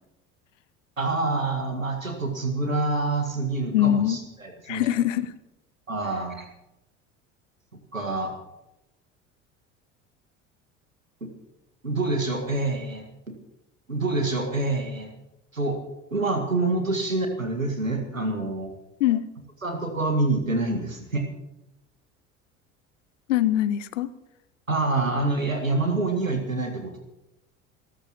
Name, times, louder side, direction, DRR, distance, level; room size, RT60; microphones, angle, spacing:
voice 1, 1.0-4.9 5.9-6.5 7.9-8.3 11.2-11.3 11.8-13.4 13.9-15.1 15.5-15.8 16.1-18.7 19.6-21.3 24.7-27.0, right 2 dB, 90° right, 5 dB, 1.9 m, -26 dB
voice 2, 3.7-4.2 4.7-5.3 19.0-19.3 23.3-24.1, left 12 dB, 65° left, 15 dB, 0.9 m, -23 dB
28.5 x 14.0 x 3.0 m, 0.93 s
figure-of-eight pair, 65°, 39 cm